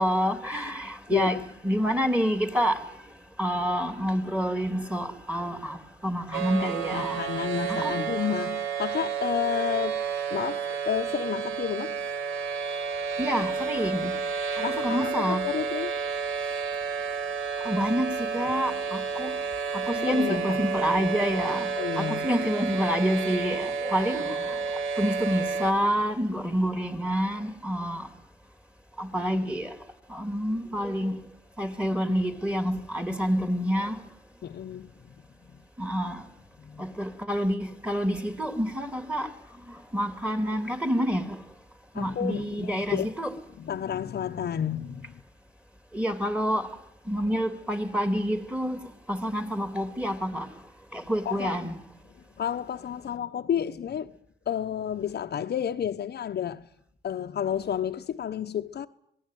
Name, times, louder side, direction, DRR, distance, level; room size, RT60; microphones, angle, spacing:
voice 1, 0.0-1.4 1.6-3.0 3.4-7.3 7.7-7.9 13.2-14.2 14.6-15.4 17.6-19.3 19.7-24.6 25.0-28.1 29.0-29.7 30.1-31.2 31.6-34.0 35.8-36.2 36.8-39.3 39.7-41.4 41.9-43.3 45.9-46.7 47.1-48.8 49.1-50.5 50.9-51.7, equal, 5° right, 3.0 m, -28 dB
voice 2, 1.1-1.4 6.6-10.0 10.3-12.0 14.6-16.2 19.9-20.6 21.8-22.3 34.4-35.1 36.6-36.9 41.9-43.1 43.6-45.2 51.2-51.6 52.4-54.1 54.5-56.6 57.0-58.9, left 9 dB, 55° left, 1.1 m, -31 dB
sound 1, 6.3-25.7, right 5 dB, 80° right, 2.4 m, -31 dB
26.0 x 19.5 x 9.4 m
cardioid pair, 90°, 20 cm